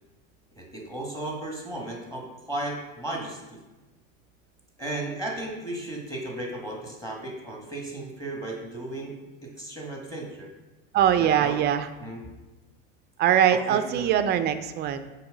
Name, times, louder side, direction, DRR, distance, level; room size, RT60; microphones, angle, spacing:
voice 1, 0.6-3.6 4.8-9.1 9.4-10.5 11.0-11.5 12.0-12.2 13.7-14.1, right 1 dB, 10° left, -1 dB, 1.1 m, -35 dB
voice 2, 10.9-11.9 13.2-15.0, right 10 dB, 35° right, 10 dB, 0.4 m, -22 dB
7.1 x 2.9 x 5.0 m, 1.1 s
supercardioid pair, 120°, 32 cm